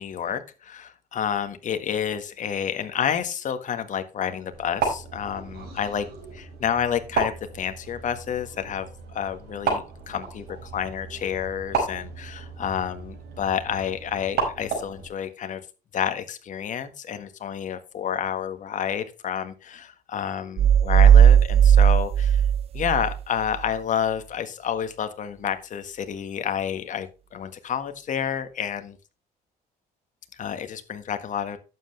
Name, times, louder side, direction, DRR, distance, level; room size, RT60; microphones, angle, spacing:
voice 1, 0.0-6.0 6.3-8.9 9.1-15.6 15.9-22.4 22.7-29.0 30.3-31.6, left 8 dB, 50° left, 9 dB, 1.5 m, -29 dB
sound 1, 4.5-15.1, right 5 dB, 75° right, 5.0 m, -33 dB
sound 2, 20.6-23.2, right 9 dB, 35° right, 0.4 m, -16 dB
11.5 x 7.9 x 3.3 m, 0.31 s
cardioid pair, 110°, 17 cm